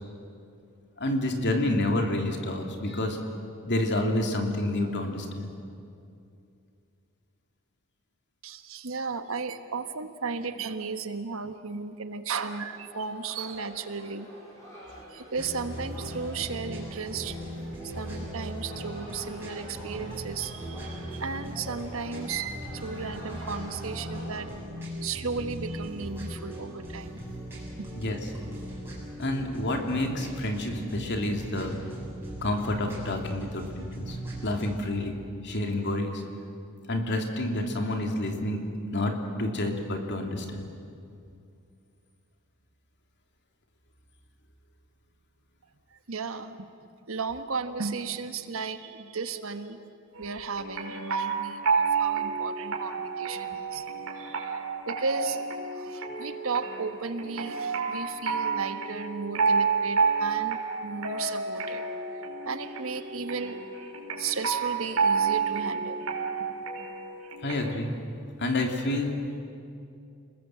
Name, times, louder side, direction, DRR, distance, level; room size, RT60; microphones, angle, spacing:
voice 1, 1.0-3.2 3.6-5.5 27.9-28.2 29.2-31.8 32.4-34.2 34.4-36.2 36.9-38.6 38.9-40.6 62.3-62.4 67.4-67.9 68.4-69.2, left 1 dB, 55° left, 3 dB, 2.9 m, -29 dB
voice 2, 8.4-14.3 15.1-17.4 17.8-24.5 24.8-27.2 27.8-27.9 45.9-46.6 47.1-49.8 50.2-54.6 54.9-55.5 55.7-63.6 64.2-66.1, right 5 dB, 70° right, 9 dB, 1.4 m, -35 dB
sound 1, 12.5-24.4, equal, 15° left, 7.5 m, -47 dB
sound 2, 15.4-34.8, right 1 dB, 10° right, 7.3 m, -39 dB
sound 3, 50.1-67.8, right 5 dB, 90° right, 4.8 m, -30 dB
29.5 x 20.5 x 7.8 m, 2.5 s
head